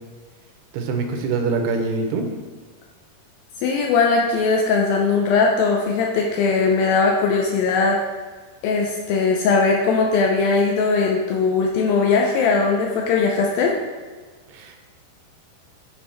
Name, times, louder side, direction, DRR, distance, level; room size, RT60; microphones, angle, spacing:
voice 1, 0.7-2.3 14.5-14.8, right 4 dB, 90° right, 4 dB, 2.8 m, -24 dB
voice 2, 3.6-8.0 8.6-13.8, left 4 dB, 80° left, 0 dB, 2.1 m, -19 dB
9.1 x 3.5 x 3.2 m, 1.4 s
omnidirectional pair, 4.6 m